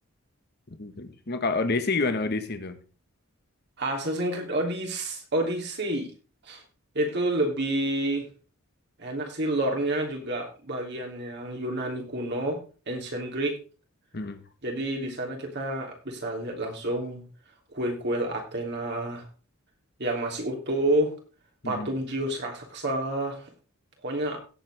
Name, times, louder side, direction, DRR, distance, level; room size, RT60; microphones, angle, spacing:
voice 1, 0.7-2.8 14.1-14.4 21.6-21.9, left 3 dB, 50° left, 9 dB, 1.4 m, -28 dB
voice 2, 3.8-6.1 6.4-6.6 6.9-8.3 9.0-13.6 14.6-17.2 17.7-19.2 20.0-21.1 21.6-23.5 24.0-24.4, right 1 dB, 50° right, 1 dB, 3.0 m, -29 dB
17.0 x 7.6 x 3.5 m, 0.35 s
head